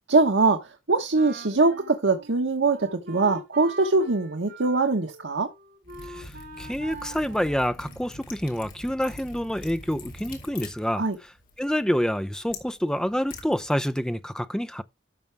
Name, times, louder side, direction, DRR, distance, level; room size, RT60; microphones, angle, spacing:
voice 1, 0.1-5.5 10.9-11.2, right 3 dB, 85° right, 1.2 m, -22 dB
Wind instrument woodwind instrument, 1.1-8.3, right 2 dB, 60° right, 4.1 m, -44 dB
Liquid, 5.8-14.1, left 2 dB, 50° left, 3.2 m, -45 dB
voice 2, 6.6-11.0 11.6-14.8, equal, 5° left, 0.6 m, -27 dB
12.5 x 6.7 x 3.5 m
head